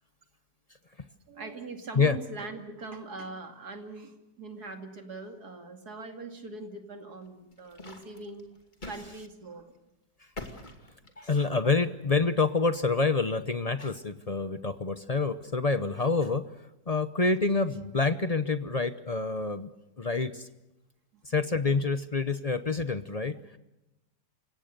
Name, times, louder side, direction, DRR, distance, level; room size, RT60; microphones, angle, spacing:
voice 1, 1.3-8.5 8.8-9.7 21.1-21.2 23.3-23.6, right 3 dB, 60° right, 5 dB, 2.9 m, -42 dB
sound 1, 7.2-9.1 9.4-9.6 10.3-11.6, left 2 dB, 25° left, 2.5 m, -44 dB
voice 2, 11.2-16.4 16.9-19.7 20.0-20.5 21.2-23.4, left 4 dB, 45° left, 11 dB, 0.5 m, -27 dB
29.0 x 17.0 x 6.7 m, 0.97 s
omnidirectional pair, 1.9 m